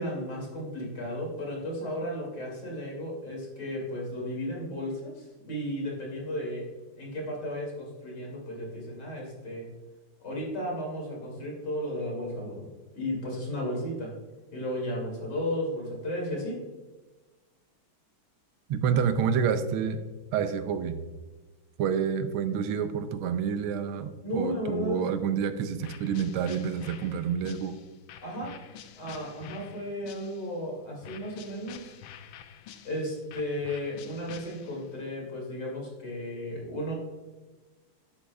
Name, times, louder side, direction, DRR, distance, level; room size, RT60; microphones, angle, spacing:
voice 1, 0.0-6.6 7.0-9.6 10.2-12.7 12.9-14.1 14.5-16.6 24.2-25.0 28.2-28.5 29.0-32.0 32.8-36.9, left 1 dB, 55° left, -2 dB, 3.0 m, -34 dB
voice 2, 18.7-20.0 20.3-21.0 21.8-27.8, right 7 dB, 90° right, 10 dB, 1.5 m, -28 dB
sound 1, 25.8-30.6 31.0-35.0, left 9 dB, 80° left, 1.4 m, -48 dB
10.5 x 8.5 x 2.3 m, 1.2 s
omnidirectional pair, 2.3 m